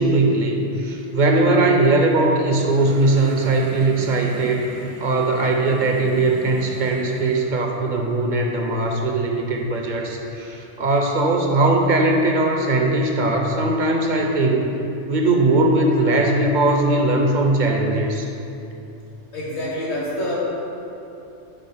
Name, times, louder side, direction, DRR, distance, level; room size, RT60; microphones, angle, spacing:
voice 1, 0.0-4.6 5.0-14.8 15.1-18.3, right 2 dB, 50° right, 1 dB, 0.6 m, -19 dB
sound 1, 2.6-7.6, right 2 dB, 80° right, 1.0 m, -38 dB
voice 2, 19.3-20.3, left 1 dB, 65° left, -6 dB, 1.9 m, -26 dB
5.2 x 4.9 x 5.5 m, 2.8 s
omnidirectional pair, 1.3 m